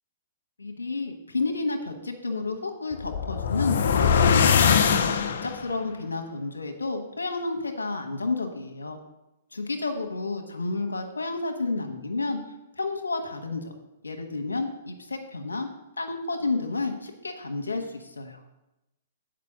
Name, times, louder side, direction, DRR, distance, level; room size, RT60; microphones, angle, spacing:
voice 1, 0.6-9.0 9.5-12.4 12.8-13.7 14.0-15.7 16.0-18.4, left 3 dB, 85° left, 5 dB, 1.2 m, -31 dB
sound 1, 2.9-5.7, left 7 dB, 60° left, 0.6 m, -22 dB
7.5 x 5.1 x 7.2 m, 0.94 s
figure-of-eight pair, 115°, 0 cm